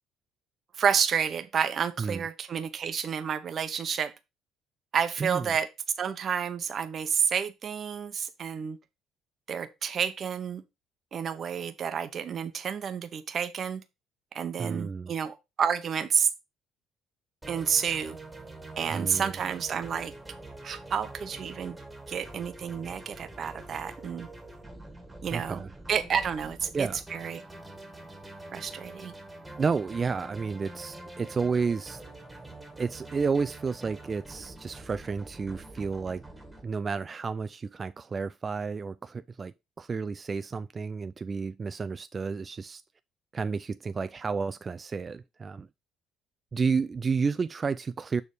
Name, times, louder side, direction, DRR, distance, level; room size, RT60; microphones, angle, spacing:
voice 1, 0.8-4.1 4.9-5.7 6.0-8.8 9.5-10.6 11.1-13.8 14.3-16.3 17.5-18.2 18.8-20.1 20.6-21.8 22.1-24.3 25.2-25.6 25.9-27.4 28.5-29.1, right 7 dB, 45° right, 0.8 m, -30 dB
voice 2, 5.2-5.5 14.6-15.1 18.9-19.3 25.3-25.7 26.7-27.0 29.6-32.0 32.8-36.2 36.6-42.8 43.3-45.7 46.5-48.2, right 5 dB, 30° right, 0.3 m, -31 dB
sound 1, 17.4-36.6, right 2 dB, 10° right, 1.7 m, -45 dB
6.6 x 3.5 x 4.8 m
cardioid pair, 105°, 0 cm